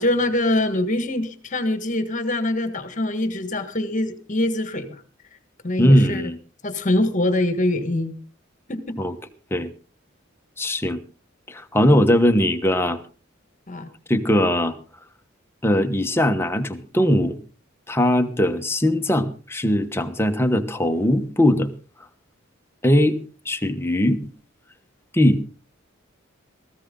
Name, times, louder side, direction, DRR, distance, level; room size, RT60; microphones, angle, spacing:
voice 1, 0.0-5.0 5.6-6.3 6.6-8.1 8.7-9.0 13.7-13.9, left 1 dB, 40° left, 10 dB, 1.6 m, -24 dB
voice 2, 5.8-6.4 9.0-9.1 9.5-9.7 10.6-11.0 11.5-13.0 14.1-14.8 15.6-17.4 17.9-21.7 22.8-23.2 23.4-24.2 25.1-25.4, equal, 10° left, 7 dB, 1.1 m, -20 dB
17.5 x 15.5 x 3.8 m, 0.36 s
head